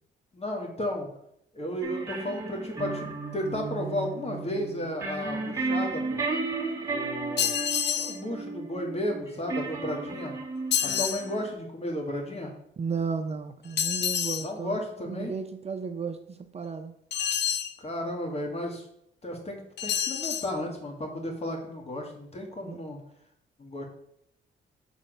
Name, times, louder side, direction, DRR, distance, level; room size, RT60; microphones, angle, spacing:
voice 1, 0.3-1.1 1.5-6.2 6.8-7.6 8.0-10.3 10.8-12.5 14.4-15.3 17.8-18.8 19.2-23.0 23.6-23.9, left 1 dB, 30° left, 2 dB, 1.9 m, -33 dB
sound 1, 1.8-11.5, right 3 dB, 15° right, 1.6 m, -34 dB
sound 2, 7.4-8.2 10.7-11.2 13.8-14.5 17.1-17.7 19.8-20.5, left 9 dB, 60° left, 0.6 m, -28 dB
voice 2, 12.8-14.8 15.0-16.9 22.6-22.8, right 5 dB, 35° right, 8 dB, 0.5 m, -34 dB
6.2 x 4.0 x 5.2 m, 0.74 s
cardioid pair, 90°, 20 cm